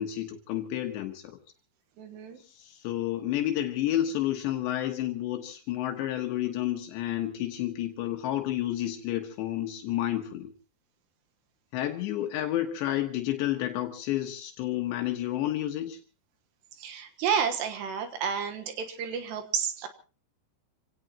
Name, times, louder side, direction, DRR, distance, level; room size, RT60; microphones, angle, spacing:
voice 1, 0.0-1.4 2.4-10.5 11.7-16.0, left 13 dB, 80° left, 3 dB, 3.5 m, -30 dB
voice 2, 2.0-2.4 16.7-19.9, right 7 dB, 75° right, 6 dB, 3.4 m, -31 dB
27.5 x 17.0 x 2.9 m, 0.35 s
omnidirectional pair, 5.1 m